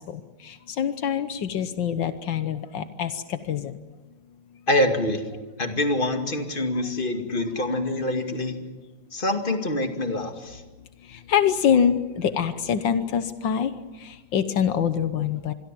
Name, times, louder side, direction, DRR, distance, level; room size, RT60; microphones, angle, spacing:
voice 1, 0.0-3.7 6.7-6.8 11.1-13.7 14.0-15.5, left 8 dB, 80° left, 10 dB, 1.7 m, -25 dB
voice 2, 4.7-5.2 5.6-8.6 9.1-10.6, left 1 dB, 25° left, 5 dB, 2.4 m, -25 dB
26.5 x 22.5 x 7.6 m, 1.2 s
omnidirectional pair, 2.0 m